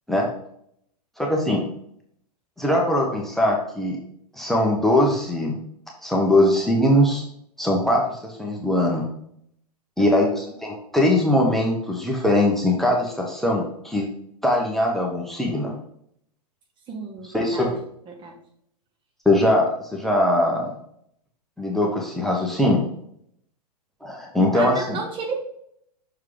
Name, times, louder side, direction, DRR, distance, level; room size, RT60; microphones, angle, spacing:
voice 1, 1.2-1.6 2.6-4.0 4.3-5.6 6.0-7.2 7.6-9.1 10.0-14.1 14.4-15.7 17.3-17.8 19.2-20.7 21.6-22.8 24.0-25.0, left 1 dB, ahead, 0 dB, 1.0 m, -21 dB
voice 2, 10.0-10.4 16.9-17.7 18.1-18.3 24.5-25.3, right 4 dB, 25° right, 2 dB, 1.1 m, -33 dB
6.3 x 4.7 x 3.7 m, 0.70 s
figure-of-eight pair, 110°, 21 cm